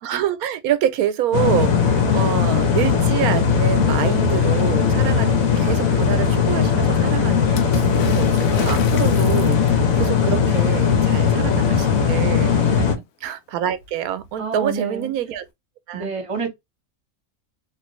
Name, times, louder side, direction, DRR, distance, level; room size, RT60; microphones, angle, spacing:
voice 1, 0.0-12.8 13.2-15.5 15.9-16.1, right 10 dB, 85° right, 1.1 m, -26 dB
sound 1, 1.3-13.0, left 6 dB, 70° left, 1.2 m, -18 dB
Water / Splash splatter, 7.6-10.0 13.2-13.3 13.6-14.4 15.4-15.5, left 5 dB, 90° left, 1.2 m, -34 dB
voice 2, 12.6-13.0 14.4-15.1 15.9-16.5, right 4 dB, 25° right, 0.9 m, -29 dB
3.1 x 2.5 x 3.0 m
omnidirectional pair, 1.5 m